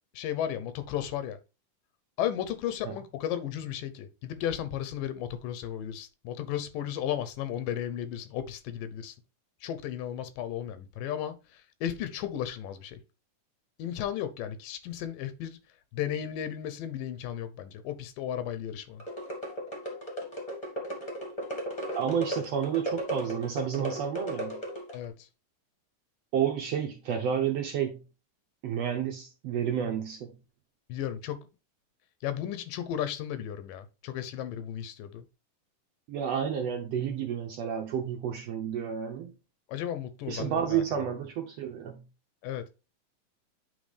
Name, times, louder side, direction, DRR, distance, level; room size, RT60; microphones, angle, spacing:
voice 1, 0.1-1.4 2.2-9.1 9.6-13.0 13.8-15.6 15.9-19.0 24.9-25.3 30.9-31.5 32.2-35.2 39.7-41.1 42.4-42.7, left 10 dB, 90° left, 2.5 m, -34 dB
sound 1, 19.0-25.1, right 1 dB, 20° left, 1.0 m, -36 dB
voice 2, 21.9-24.6 26.3-28.0 28.6-30.3 36.1-39.3 40.3-42.0, right 8 dB, 75° right, 1.5 m, -30 dB
9.4 x 3.9 x 3.3 m
omnidirectional pair, 3.8 m